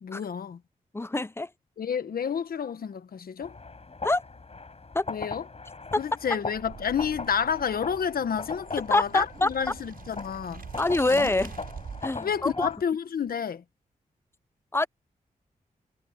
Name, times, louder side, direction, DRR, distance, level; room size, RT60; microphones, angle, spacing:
voice 1, 0.0-0.6 1.8-3.6 5.1-5.4 6.0-10.7 11.1-11.3 12.2-13.6, left 7 dB, 80° left, 1.4 m, -30 dB
voice 2, 0.9-1.5 4.0-4.2 4.9-5.1 8.9-9.5 10.8-11.5 12.0-12.7 14.7-14.9, left 2 dB, 15° left, 0.5 m, -25 dB
sound 1, 3.4-12.8, left 3 dB, 40° left, 8.0 m, -40 dB
sound 2, 6.5-12.2, right 6 dB, 75° right, 7.0 m, -45 dB
cardioid pair, 60°, 15 cm